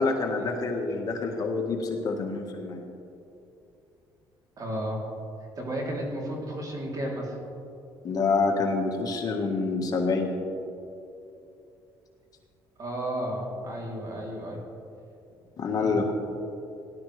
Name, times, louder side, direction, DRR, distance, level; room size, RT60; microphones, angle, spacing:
voice 1, 0.0-2.9 8.0-10.3 15.6-16.1, left 4 dB, 45° left, 1 dB, 1.6 m, -27 dB
voice 2, 4.6-5.0 5.6-7.4 12.8-14.6 15.8-16.0, right 1 dB, 40° right, -2 dB, 3.4 m, -33 dB
18.0 x 11.5 x 3.4 m, 2.7 s
cardioid pair, 105°, 9 cm